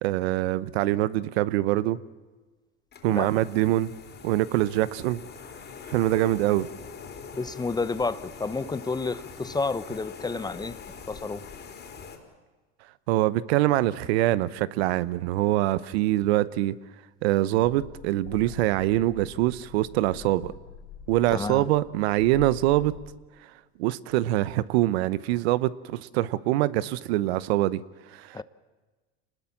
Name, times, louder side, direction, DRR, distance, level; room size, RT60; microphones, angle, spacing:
voice 1, 0.0-2.0 3.0-3.9 4.2-5.2 5.9-6.7 13.1-16.8 17.2-20.5 21.1-23.0 23.4-23.5 23.8-28.4, right 15 dB, 75° right, 1.0 m, -24 dB
sound 1, 2.9-12.2, left 6 dB, 30° left, 4.1 m, -43 dB
voice 2, 7.4-10.8 11.1-11.4 21.3-21.7 28.3-28.4, left 3 dB, 10° left, 0.8 m, -30 dB
sound 2, 17.6-23.1, left 7 dB, 75° left, 4.5 m, -45 dB
26.5 x 20.0 x 7.3 m
supercardioid pair, 110°, 32 cm